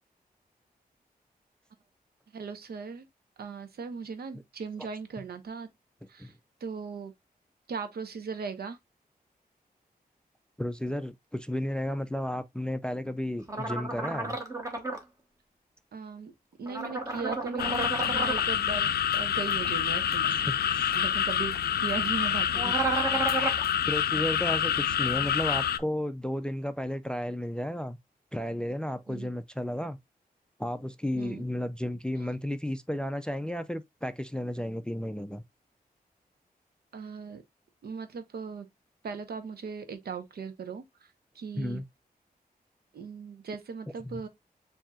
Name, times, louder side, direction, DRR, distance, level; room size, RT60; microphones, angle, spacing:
voice 1, 2.3-3.1 3.4-5.7 6.1-6.3 6.6-7.1 7.7-8.8 15.9-16.3 16.6-20.4 20.9-22.9 29.1-29.4 31.1-31.4 32.2-32.3 36.9-37.4 37.8-38.7 39.0-41.8 42.9-44.3, right 5 dB, 85° right, 0.8 m, -38 dB
voice 2, 10.6-14.4 20.5-20.9 23.9-28.0 28.3-30.0 30.6-35.4 41.6-41.8 44.0-44.2, left 1 dB, 5° left, 0.3 m, -33 dB
sound 1, 13.5-15.0 16.7-18.4 22.5-23.6, right 3 dB, 20° right, 1.0 m, -31 dB
sound 2, 17.6-25.8, left 9 dB, 90° left, 0.4 m, -27 dB
7.2 x 2.8 x 2.3 m
wide cardioid pair, 145°, 16 cm